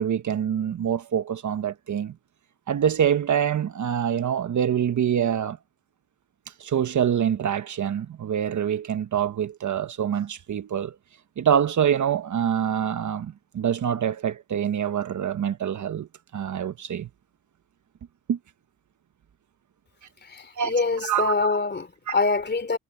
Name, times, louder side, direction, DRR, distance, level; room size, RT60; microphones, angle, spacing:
voice 1, 0.0-2.1 2.7-5.6 6.6-10.9 11.4-16.1 16.3-17.1 18.3-18.4 20.6-20.7 21.0-21.3 22.1-22.2, right 9 dB, 55° right, 1.2 m, -25 dB
voice 2, 20.2-22.8, left 4 dB, 30° left, 3.3 m, -25 dB
cardioid pair, 75°, 36 cm